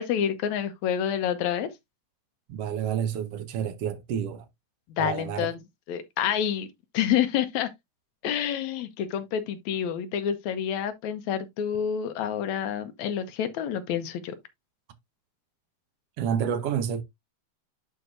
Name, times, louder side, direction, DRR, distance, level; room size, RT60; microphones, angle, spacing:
voice 1, 0.0-1.7 5.0-5.6 5.9-6.7 6.9-7.7 8.2-14.4, left 9 dB, 75° left, 2.2 m, -28 dB
voice 2, 2.5-4.4 5.0-5.5 16.2-17.0, right 8 dB, 65° right, 1.6 m, -29 dB
11.0 x 4.5 x 2.5 m
omnidirectional pair, 3.3 m